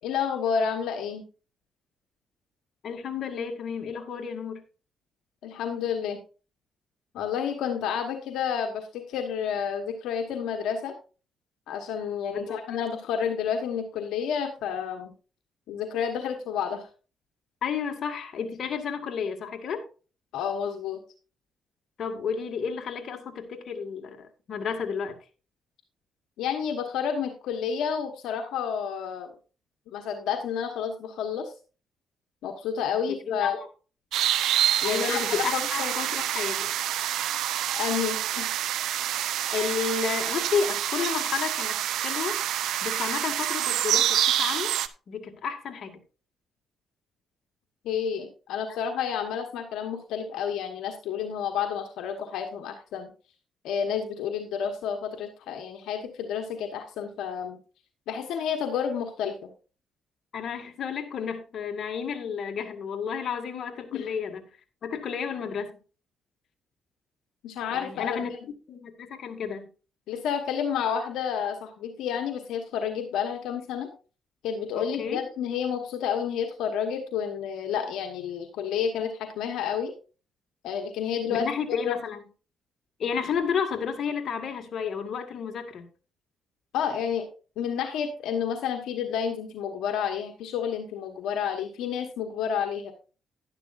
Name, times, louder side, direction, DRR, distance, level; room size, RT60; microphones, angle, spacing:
voice 1, 0.0-1.2 5.4-6.2 7.1-10.9 11.7-15.1 15.7-16.9 20.3-21.0 26.4-29.3 29.9-31.5 32.4-33.6 34.8-35.9 37.7-38.6 47.8-53.1 53.6-57.6 58.1-59.4 63.9-64.1 67.4-68.2 70.1-73.9 74.4-79.9 80.6-82.0 86.7-87.3 87.6-92.9, left 7 dB, 85° left, 1.3 m, -30 dB
voice 2, 2.8-4.6 12.3-12.8 17.6-19.8 22.0-25.2 33.3-33.5 34.8-36.7 39.5-42.4 42.8-44.7 45.1-46.0 48.7-48.8 60.3-64.4 64.8-65.8 67.7-68.3 68.7-69.7 74.8-75.2 81.3-82.2 83.0-85.9, left 6 dB, 60° left, 1.9 m, -31 dB
sound 1, 34.1-44.9, right 11 dB, 80° right, 0.6 m, -27 dB
11.0 x 11.0 x 2.6 m
cardioid pair, 90°, 0 cm